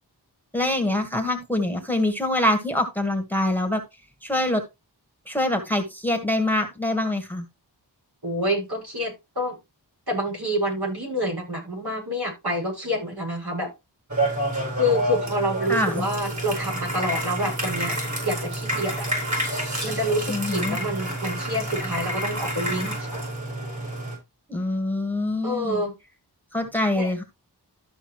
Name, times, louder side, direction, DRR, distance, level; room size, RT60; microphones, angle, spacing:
voice 1, 0.5-3.8 4.2-4.6 5.3-7.4 15.7-16.0 20.3-20.8 24.5-25.8 26.5-27.2, left 1 dB, 5° left, 1.6 m, -24 dB
voice 2, 8.2-9.6 10.1-13.7 14.8-18.0 18.2-19.1 19.8-23.1 25.4-25.9 26.9-27.1, equal, 65° right, 6.0 m, -27 dB
sound 1, 14.1-24.2, right 1 dB, 45° right, 5.9 m, -29 dB
13.5 x 5.4 x 3.1 m
wide cardioid pair, 60°, 41 cm